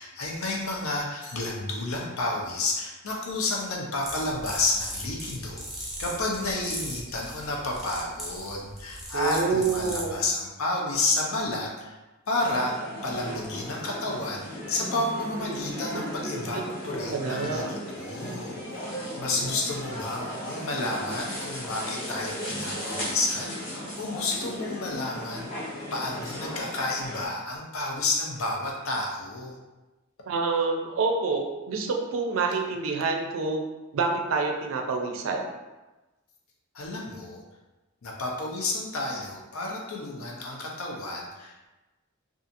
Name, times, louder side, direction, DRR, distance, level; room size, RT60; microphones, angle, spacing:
voice 1, 0.0-12.0 12.3-18.6 19.2-25.5 25.9-29.6 36.7-37.4 38.0-41.7, left 2 dB, 80° left, -1 dB, 0.6 m, -31 dB
sound 1, 4.0-10.2, right 1 dB, ahead, 0.5 m, -39 dB
voice 2, 9.1-10.2 16.5-16.6 17.1-17.7 30.3-33.6 33.9-35.5, right 4 dB, 70° right, 2 dB, 0.4 m, -27 dB
sound 2, 12.4-27.3, equal, 40° left, 0.8 m, -36 dB
2.7 x 2.4 x 2.5 m, 1.1 s
head